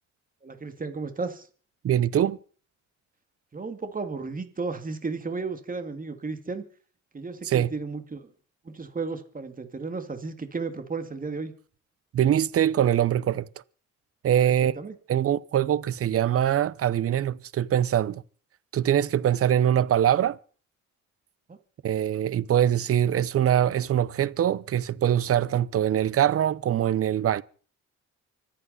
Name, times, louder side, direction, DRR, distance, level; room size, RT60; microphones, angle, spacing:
voice 1, 0.4-1.5 3.5-6.7 7.1-8.3 8.6-11.5 14.4-14.9 21.5-21.6, right 4 dB, 30° right, 2.4 m, -34 dB
voice 2, 1.8-2.4 7.4-7.7 12.1-13.5 14.2-14.7 15.1-18.2 18.7-20.4 21.8-27.4, right 10 dB, 50° right, 0.7 m, -23 dB
25.0 x 8.7 x 5.5 m
cardioid pair, 90°, 30 cm